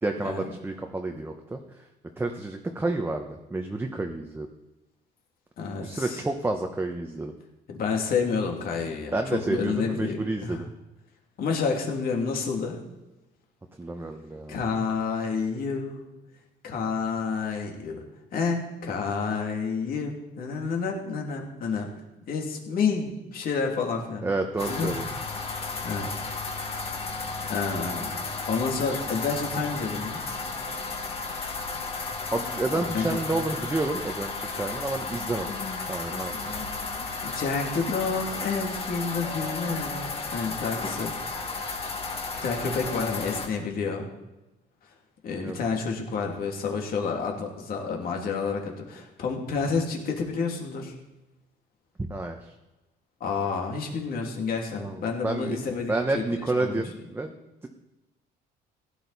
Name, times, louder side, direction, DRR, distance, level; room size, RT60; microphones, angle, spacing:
voice 1, 0.0-1.6 2.2-4.5 5.8-7.3 9.1-10.7 13.8-14.6 24.2-25.0 32.3-35.5 35.9-36.4 45.3-45.5 52.0-52.4 54.8-54.9 55.2-55.6 55.9-57.3, right 2 dB, 15° right, 3 dB, 1.1 m, -29 dB
voice 2, 5.6-6.2 7.7-10.6 11.4-12.8 14.5-16.1 16.6-18.0 18.3-21.9 22.3-24.3 24.7-25.0 25.8-26.1 27.5-28.1 28.5-30.2 32.8-33.4 37.2-41.1 42.3-44.1 45.2-51.0 53.2-56.9, left 5 dB, 60° left, 1 dB, 2.7 m, -29 dB
sound 1, 24.6-43.5, left 4 dB, 35° left, 2.0 m, -33 dB
16.0 x 10.0 x 4.2 m, 1.0 s
cardioid pair, 110°, 17 cm